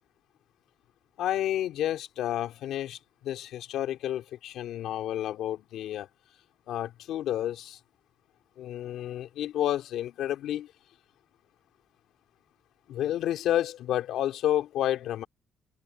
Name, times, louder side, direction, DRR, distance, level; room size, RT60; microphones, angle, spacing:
voice 1, 1.2-6.1 6.7-7.8 8.6-10.7 12.9-15.3, left 12 dB, 80° left, 2.5 m, -30 dB
cardioid pair, 90°, 0 cm